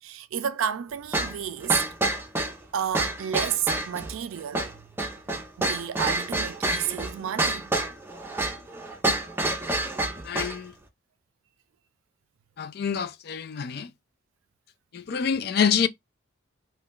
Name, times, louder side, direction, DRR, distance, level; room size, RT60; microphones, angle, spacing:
voice 1, 0.0-1.9 2.7-4.9 5.6-7.8, right 9 dB, 85° right, 0.4 m, -31 dB
sound 1, 1.1-10.6, right 2 dB, 10° right, 0.5 m, -28 dB
voice 2, 10.2-10.7 12.6-13.9 14.9-15.9, left 7 dB, 50° left, 0.3 m, -26 dB
2.4 x 2.2 x 3.6 m
head